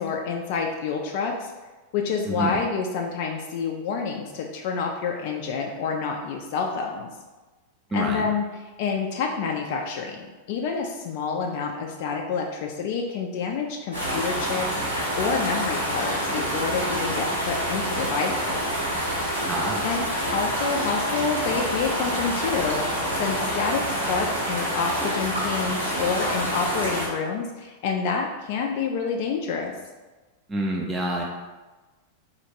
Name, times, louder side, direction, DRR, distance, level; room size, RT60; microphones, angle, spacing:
voice 1, 0.0-1.5 1.9-7.1 7.9-8.5 8.8-14.7 14.9-18.7 19.8-20.1 20.3-22.8 23.2-29.7, left 5 dB, 50° left, 1 dB, 0.4 m, -28 dB
voice 2, 7.9-8.3 19.5-19.9 30.5-31.2, right 1 dB, 15° right, -1 dB, 0.4 m, -27 dB
sound 1, 13.9-27.1, equal, 80° right, 1.2 m, -27 dB
sound 2, 19.0-27.2 27.6-27.7, equal, 10° left, 1.2 m, -40 dB
4.2 x 2.4 x 2.9 m, 1.2 s
figure-of-eight pair, 90°, 0 cm